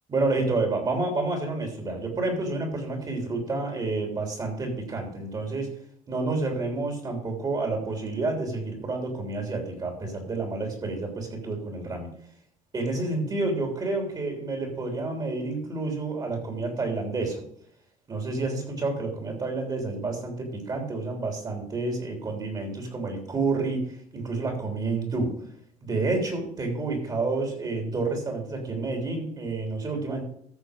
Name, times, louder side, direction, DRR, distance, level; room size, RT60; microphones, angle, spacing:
voice 1, 0.1-5.7 6.1-12.1 12.7-17.4 18.1-25.4 25.8-30.2, right 3 dB, 30° right, 2 dB, 3.4 m, -29 dB
14.0 x 6.6 x 5.2 m, 0.66 s
cardioid pair, 130°, 14 cm